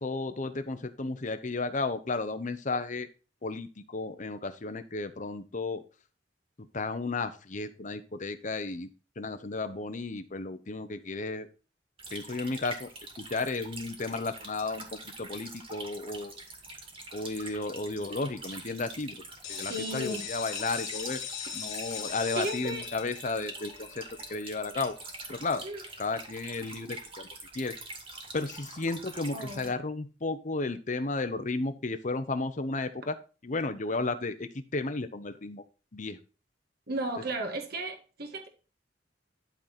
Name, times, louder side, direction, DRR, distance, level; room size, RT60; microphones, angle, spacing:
voice 1, 0.0-3.1 3.4-5.8 6.7-8.9 9.2-11.5 12.1-12.9 13.2-14.8 15.2-16.3 17.1-19.1 19.5-21.2 21.5-24.0 24.3-25.0 25.3-25.6 26.0-27.3 27.5-27.7 28.3-33.2 33.4-35.6 35.9-36.2, left 3 dB, 45° left, 9 dB, 0.9 m, -33 dB
sound 1, 12.0-29.7, right 2 dB, 30° right, 2.3 m, -45 dB
sound 2, 19.4-25.1, left 8 dB, 70° left, 2.6 m, -40 dB
voice 2, 19.7-20.2 21.9-22.0 22.3-22.8 25.6-25.8 29.3-29.7 36.9-38.5, right 2 dB, 55° right, 5 dB, 1.5 m, -34 dB
12.0 x 4.0 x 4.3 m, 0.35 s
head